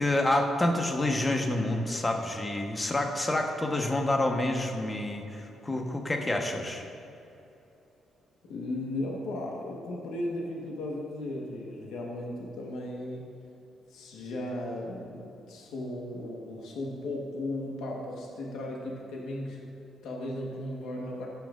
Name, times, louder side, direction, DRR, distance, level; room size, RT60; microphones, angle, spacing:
voice 1, 0.0-6.8, left 1 dB, 20° left, 3 dB, 1.0 m, -28 dB
voice 2, 8.4-13.3 13.9-19.7 20.0-21.3, left 1 dB, 80° left, -1 dB, 1.3 m, -36 dB
16.0 x 5.8 x 2.5 m, 2.8 s
cardioid pair, 90°, 0 cm